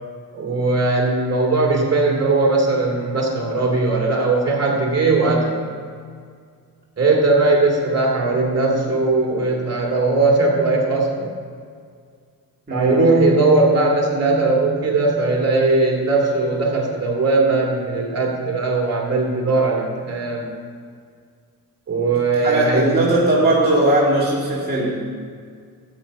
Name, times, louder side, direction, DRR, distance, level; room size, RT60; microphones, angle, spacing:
voice 1, 0.3-5.6 7.0-11.3 12.7-20.4 21.9-22.9, right 3 dB, 45° right, -1 dB, 2.7 m, -19 dB
voice 2, 12.7-13.0 22.4-25.1, right 1 dB, 25° right, -6 dB, 2.2 m, -18 dB
13.5 x 8.4 x 5.4 m, 2.1 s
cardioid pair, 115°, 37 cm